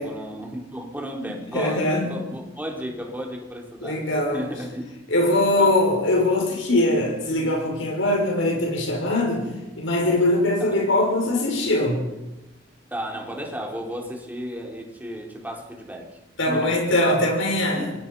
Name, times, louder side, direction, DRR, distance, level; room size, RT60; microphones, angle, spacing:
voice 1, 0.0-4.0 4.3-4.8 5.2-5.7 10.6-10.8 12.9-16.2 16.5-16.8 17.8-18.0, equal, 10° right, 0 dB, 4.1 m, -34 dB
voice 2, 1.2-2.1 3.8-4.4 5.1-9.4 9.8-12.0 16.4-17.9, left 1 dB, 90° left, 1 dB, 6.3 m, -22 dB
27.0 x 21.5 x 5.6 m, 1.0 s
head